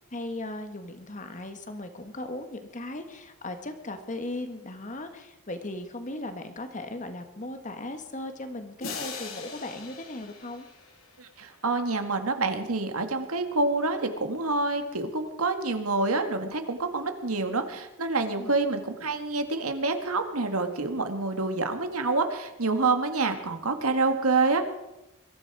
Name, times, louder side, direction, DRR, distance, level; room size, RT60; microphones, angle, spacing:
voice 1, 0.1-10.7 18.4-18.5, left 1 dB, 35° left, 7 dB, 1.6 m, -37 dB
sound 1, 8.8-11.6, left 5 dB, 70° left, 3.4 m, -41 dB
voice 2, 11.2-24.7, right 3 dB, 85° right, 7 dB, 1.9 m, -27 dB
22.5 x 13.5 x 4.8 m, 0.94 s
head